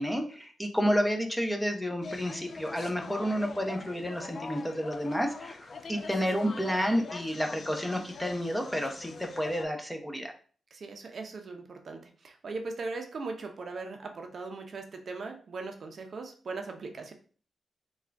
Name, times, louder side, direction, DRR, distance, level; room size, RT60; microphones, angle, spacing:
voice 1, 0.0-10.3, equal, 5° left, 3 dB, 0.6 m, -30 dB
sound 1, 2.0-9.6, left 4 dB, 55° left, 0.3 m, -44 dB
voice 2, 10.7-17.1, right 3 dB, 55° right, 4 dB, 0.6 m, -39 dB
3.6 x 2.3 x 3.3 m, 0.42 s
cardioid pair, 85°, 0 cm